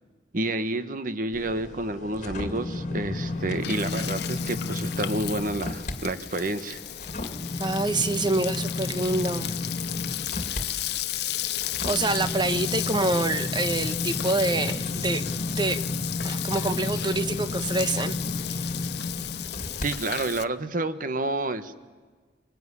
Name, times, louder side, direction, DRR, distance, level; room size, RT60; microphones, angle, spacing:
voice 1, 0.3-6.8 19.8-21.7, right 2 dB, 45° right, 11 dB, 1.3 m, -29 dB
sound 1, 1.3-6.0 6.4-19.9 20.3-20.5, left 2 dB, 40° left, 2.3 m, -32 dB
Frying (food), 3.2-20.4, left 13 dB, 60° left, 0.7 m, -34 dB
voice 2, 7.6-9.5 11.9-15.3 15.6-15.8 16.2-18.2, right 2 dB, 25° right, 11 dB, 1.0 m, -26 dB
23.5 x 22.5 x 9.8 m, 1.4 s
head